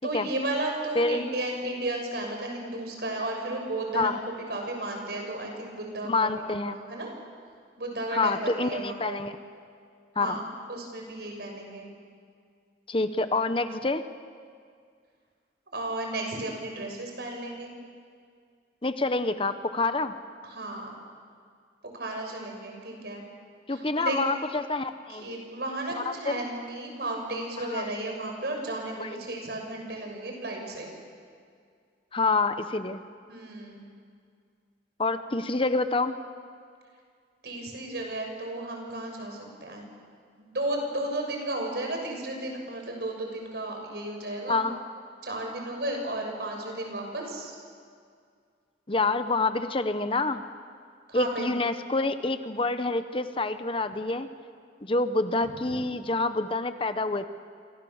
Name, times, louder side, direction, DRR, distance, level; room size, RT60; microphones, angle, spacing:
voice 1, 0.0-7.1 7.8-9.2 10.2-10.4 10.7-11.9 15.7-17.7 20.4-20.9 21.9-23.2 23.7-24.2 25.1-30.9 33.3-33.9 37.4-39.8 40.4-44.6 45.2-47.5 51.1-51.5 55.4-55.8, right 1 dB, 65° right, 2 dB, 6.5 m, -34 dB
voice 2, 0.9-1.3 3.9-4.2 6.0-6.8 8.1-9.4 10.2-10.4 12.9-14.0 18.8-20.1 23.7-25.3 26.0-26.4 27.7-27.9 29.0-29.2 32.1-33.0 35.0-36.1 44.5-44.8 48.9-50.4 51.1-54.3 54.8-57.3, left 3 dB, 30° left, 10 dB, 0.9 m, -27 dB
29.0 x 24.5 x 7.3 m, 2.1 s
head